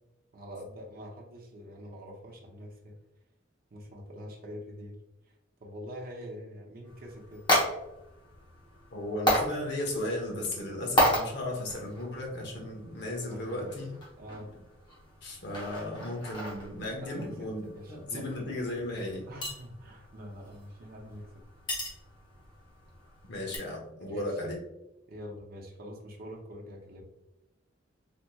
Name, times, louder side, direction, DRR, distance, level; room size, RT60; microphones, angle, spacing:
voice 1, 0.3-3.0 3.7-5.0 5.2-5.3 5.6-7.5 13.2-13.7 14.2-14.5 17.0-18.3 19.3-21.4 24.1-24.5 25.1-27.0, equal, 50° right, -1 dB, 0.7 m, -45 dB
sound 1, 6.8-23.6, equal, 25° left, 0.9 m, -34 dB
voice 2, 8.9-13.9 15.2-19.3 23.3-24.6, left 1 dB, 60° left, -1 dB, 1.0 m, -35 dB
3.4 x 2.9 x 2.2 m, 0.92 s
head